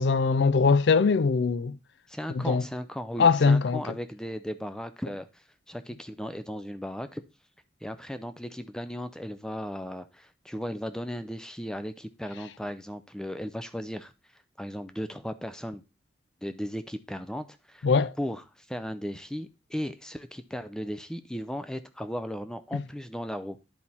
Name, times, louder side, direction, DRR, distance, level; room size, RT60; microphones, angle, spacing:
voice 1, 0.0-1.8 2.3-2.6 3.2-3.8 17.8-18.1 22.7-22.8, left 5 dB, 70° left, 0.4 m, -22 dB
voice 2, 2.1-7.2 7.8-14.1 14.6-15.8 16.4-17.9 18.2-23.6, equal, 5° left, 0.4 m, -36 dB
10.5 x 4.4 x 4.1 m
head